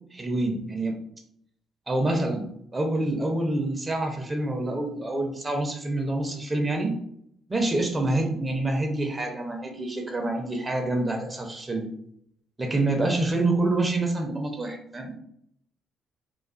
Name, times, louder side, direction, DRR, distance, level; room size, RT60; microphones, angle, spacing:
voice 1, 0.1-1.0 1.9-6.9 7.5-11.9 12.6-15.1, right 2 dB, 25° right, 3 dB, 0.6 m, -27 dB
2.4 x 2.3 x 2.4 m, 0.69 s
hypercardioid pair, 50°, 0 cm